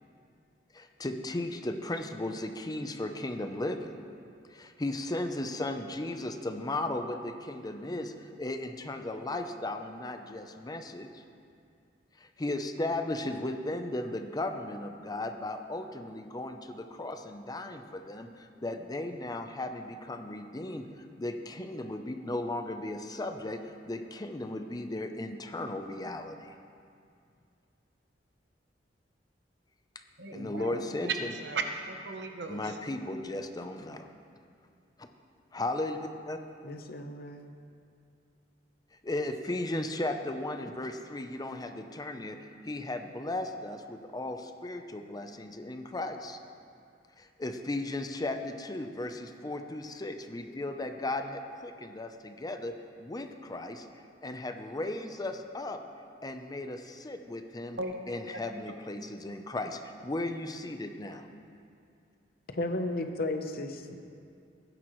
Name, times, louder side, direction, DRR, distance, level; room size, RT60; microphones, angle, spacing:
voice 1, 0.7-3.9 4.5-11.1 12.2-20.9 21.2-23.6 23.9-26.5 30.3-31.3 32.5-34.1 35.0-35.1 35.5-36.0 36.3-36.4 39.0-46.4 47.2-52.7 53.0-53.9 54.2-55.8 56.2-57.8 58.1-61.3, left 2 dB, 20° left, 6 dB, 0.6 m, -36 dB
voice 2, 30.2-31.1 31.4-32.7 57.8-57.9 58.3-58.4, right 4 dB, 70° right, 4 dB, 1.0 m, -36 dB
voice 3, 36.6-37.5 62.5-63.7, left 2 dB, 55° left, 6 dB, 0.9 m, -33 dB
19.0 x 10.5 x 3.1 m, 2.4 s
head